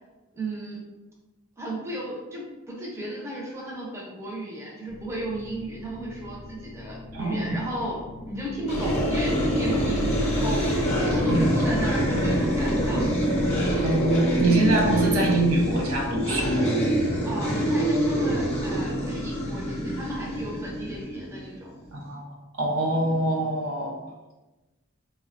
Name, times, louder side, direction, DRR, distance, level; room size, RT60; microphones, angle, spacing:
voice 1, 0.3-0.8 1.6-10.6 11.0-13.0 17.2-21.5, right 1 dB, 15° right, -4 dB, 0.5 m, -34 dB
sound 1, 4.9-21.0, left 2 dB, 70° left, 0.5 m, -42 dB
voice 2, 7.1-7.6 11.2-11.5 13.8-16.7 21.9-22.2 22.5-24.0, right 1 dB, 80° right, 0 dB, 0.6 m, -24 dB
sound 2, 8.7-21.6, equal, 30° left, 0.6 m, -25 dB
3.8 x 2.1 x 2.4 m, 1.1 s
head